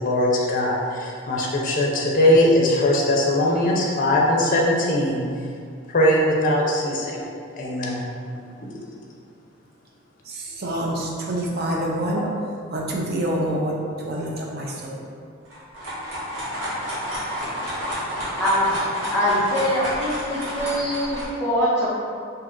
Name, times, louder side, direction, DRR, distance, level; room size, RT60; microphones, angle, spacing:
voice 1, 0.0-5.2 5.9-7.3 7.5-8.0, left 1 dB, 40° left, -3 dB, 0.5 m, -20 dB
voice 2, 10.2-12.2 12.7-15.1, right 1 dB, 50° right, -2 dB, 0.5 m, -27 dB
sound 1, 15.4-21.3, equal, 75° right, 1.1 m, -30 dB
voice 3, 18.4-18.8 19.1-21.9, equal, 15° left, -9 dB, 0.9 m, -23 dB
2.8 x 2.4 x 3.6 m, 2.3 s
head